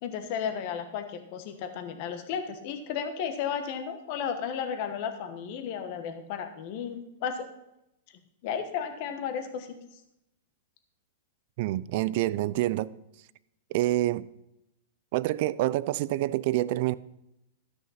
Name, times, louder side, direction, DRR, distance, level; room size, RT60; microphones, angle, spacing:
voice 1, 0.0-7.5 8.4-9.7, left 7 dB, 45° left, 1.2 m, -33 dB
voice 2, 11.6-12.9 13.7-14.3 15.1-17.0, right 16 dB, 50° right, 0.4 m, -27 dB
13.0 x 6.3 x 5.7 m
hypercardioid pair, 150°, 0 cm